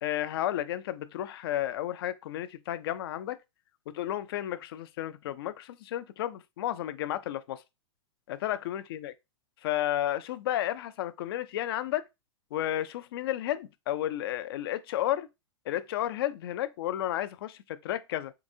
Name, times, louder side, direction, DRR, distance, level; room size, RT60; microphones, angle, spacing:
voice 1, 0.0-3.4 3.9-7.6 8.3-9.1 9.6-12.1 12.5-15.3 15.7-18.3, left 12 dB, 50° left, 0.4 m, -32 dB
3.8 x 3.2 x 2.5 m
figure-of-eight pair, 105°, 16 cm